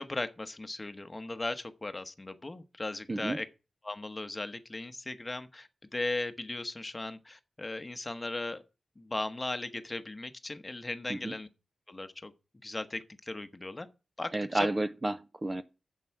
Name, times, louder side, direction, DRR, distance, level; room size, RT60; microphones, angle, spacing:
voice 1, 0.0-3.5 3.8-8.6 9.0-11.5 11.9-12.3 12.6-13.9 14.2-14.7, left 2 dB, 25° left, 1.0 m, -37 dB
voice 2, 14.3-15.6, right 2 dB, 25° right, 0.5 m, -31 dB
7.7 x 7.4 x 5.8 m
wide cardioid pair, 135°, 0 cm